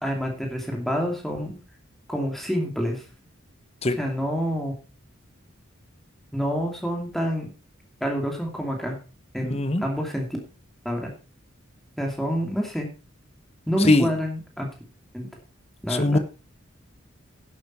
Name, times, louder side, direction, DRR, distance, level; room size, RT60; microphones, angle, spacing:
voice 1, 0.0-1.6 2.1-3.0 4.0-4.7 6.3-7.5 8.0-9.0 9.3-10.4 10.8-11.1 12.0-12.9 13.7-14.7 15.1-15.3 15.8-16.2, equal, ahead, 2.6 m, -27 dB
voice 2, 9.5-9.8 13.8-14.1 15.9-16.2, left 2 dB, 30° left, 1.0 m, -20 dB
11.0 x 8.4 x 4.6 m
head